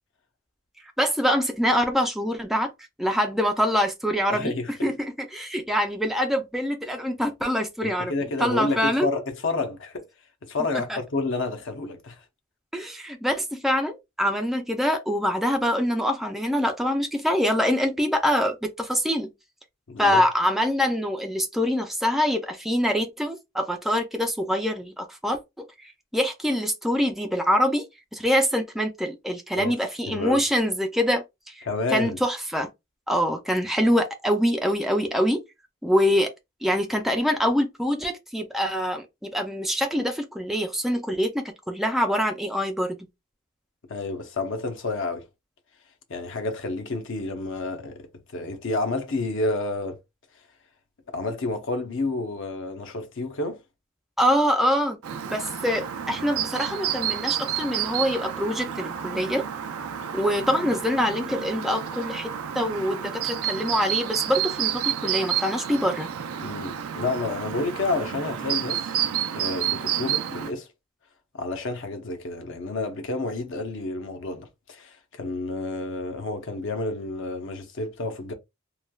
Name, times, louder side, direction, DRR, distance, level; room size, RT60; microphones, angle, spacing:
voice 1, 1.0-2.7 3.0-4.6 4.8-8.1 8.4-9.1 10.9-11.0 12.7-19.3 20.0-25.6 26.1-27.8 28.1-32.7 33.1-35.4 35.8-36.3 36.6-43.0 54.2-59.5 60.1-66.1, equal, ahead, 0.3 m, -25 dB
voice 2, 4.3-4.7 7.8-10.1 10.4-12.2 19.9-20.2 29.6-29.8 30.1-30.4 31.6-32.2 43.9-45.3 46.1-48.1 48.3-50.0 51.1-53.6 66.4-69.0 69.3-70.7 71.3-78.3, left 3 dB, 60° left, 0.7 m, -30 dB
Chirp tweet, 55.0-70.5, right 10 dB, 85° right, 0.4 m, -30 dB
3.1 x 2.2 x 2.3 m
head